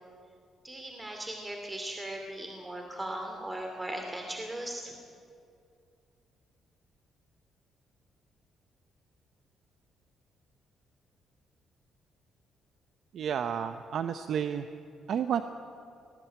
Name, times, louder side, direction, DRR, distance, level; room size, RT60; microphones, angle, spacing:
voice 1, 0.6-4.9, right 1 dB, 15° right, 2 dB, 2.5 m, -38 dB
voice 2, 13.1-14.7 15.1-15.4, right 8 dB, 65° right, 9 dB, 0.8 m, -31 dB
19.5 x 17.0 x 9.3 m, 2.5 s
cardioid pair, 90°, 0 cm